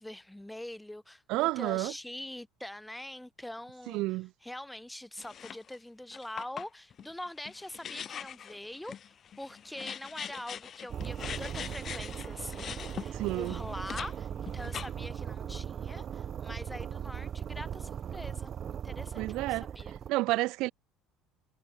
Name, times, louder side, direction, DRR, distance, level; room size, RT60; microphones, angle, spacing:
voice 1, 0.0-9.0 9.4-19.9, left 1 dB, 5° left, 4.5 m, -44 dB
voice 2, 1.3-1.9 3.9-4.3 13.1-13.6 19.2-19.7 20.1-20.7, right 20 dB, 65° right, 0.3 m, -30 dB
sound 1, 5.2-5.8 6.1-14.1 14.5-15.2, left 8 dB, 45° left, 6.8 m, -42 dB
sound 2, 10.9-20.1, right 8 dB, 45° right, 1.2 m, -39 dB
hypercardioid pair, 65°, 0 cm